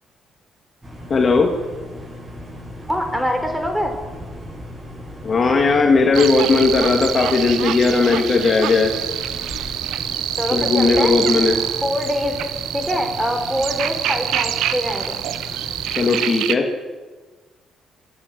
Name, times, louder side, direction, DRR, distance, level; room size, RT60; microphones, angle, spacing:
sound 1, 0.8-16.0, equal, 20° right, 7.9 m, -37 dB
voice 1, 1.1-1.5 5.2-8.9 10.5-11.6 16.0-16.7, left 4 dB, 40° left, 3 dB, 2.7 m, -17 dB
voice 2, 2.9-3.9 10.4-11.2 11.8-12.3 12.7-15.2, equal, ahead, 5 dB, 4.4 m, -24 dB
sound 2, 6.1-16.6, right 11 dB, 85° right, 1.1 m, -26 dB
28.0 x 12.5 x 7.8 m, 1.3 s
cardioid pair, 90°, 0 cm